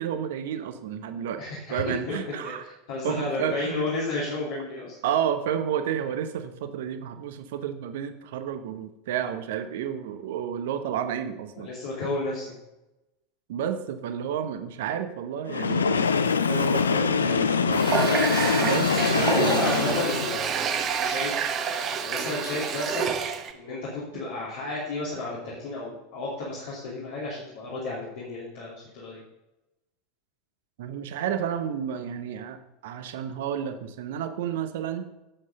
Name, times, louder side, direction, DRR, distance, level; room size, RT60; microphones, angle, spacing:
voice 1, 0.0-1.4 1.7-2.6 3.0-3.9 5.0-11.7 13.5-16.2 16.5-18.0 18.6-20.0 30.8-35.1, right 9 dB, 60° right, 8 dB, 0.9 m, -31 dB
voice 2, 1.2-1.8 2.1-2.2 2.4-2.5 2.9-5.0 11.5-12.6 19.3-21.4 22.0-23.1 23.5-29.2, left 2 dB, 60° left, -6 dB, 2.8 m, -32 dB
Train, 15.5-20.5, left 6 dB, 75° left, 0.5 m, -24 dB
Water tap faucet, 17.7-23.5, right 7 dB, 35° right, 1.0 m, -28 dB
8.9 x 7.5 x 5.3 m, 0.95 s
figure-of-eight pair, 80°, 0 cm